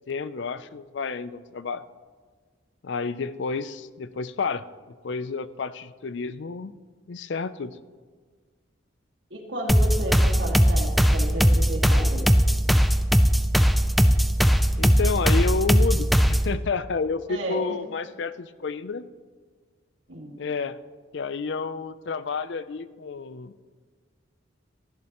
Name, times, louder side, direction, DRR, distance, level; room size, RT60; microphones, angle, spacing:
voice 1, 0.1-1.8 2.8-4.6 5.0-6.7 7.1-7.8 14.8-19.1 20.4-20.8 21.1-23.5, left 4 dB, 65° left, 14 dB, 0.5 m, -30 dB
voice 2, 9.3-12.3 17.3-17.6 20.1-20.4, equal, 70° right, 0 dB, 2.1 m, -33 dB
sound 1, 9.7-16.5, equal, ahead, 0.3 m, -20 dB
17.0 x 11.5 x 3.0 m, 1.5 s
head